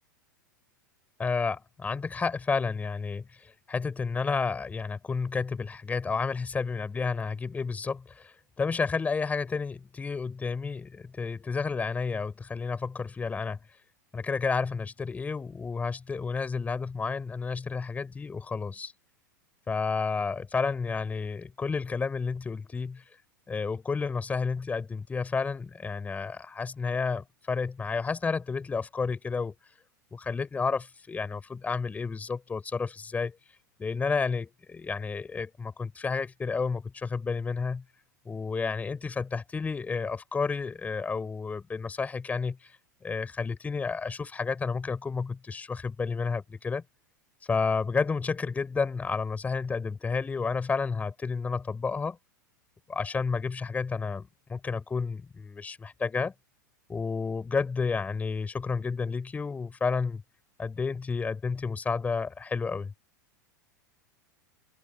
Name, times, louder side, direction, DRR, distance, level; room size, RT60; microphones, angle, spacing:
voice 1, 1.2-13.6 14.1-18.9 19.7-23.0 23.5-29.5 30.1-33.3 33.8-37.8 38.2-42.7 43.0-46.8 47.5-52.2 52.9-56.3 56.9-60.2 60.6-62.9, left 4 dB, 15° left, 6.9 m, -31 dB
figure-of-eight pair, 90°, 10 cm